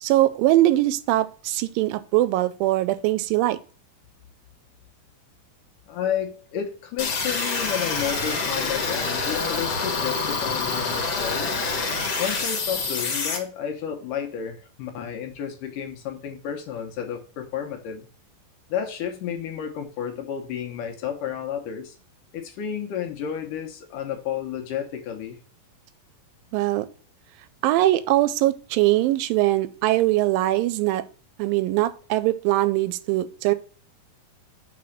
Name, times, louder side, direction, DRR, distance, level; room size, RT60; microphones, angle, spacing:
voice 1, 0.0-3.6 26.5-26.9 27.6-31.0 31.4-33.5, right 16 dB, 90° right, 2.3 m, -21 dB
voice 2, 5.9-11.6 12.2-18.1 18.7-22.0 22.3-25.4, left 9 dB, 75° left, 2.4 m, -31 dB
sound 1, 7.0-13.4, left 4 dB, 55° left, 2.4 m, -26 dB
6.0 x 4.2 x 6.3 m
omnidirectional pair, 4.0 m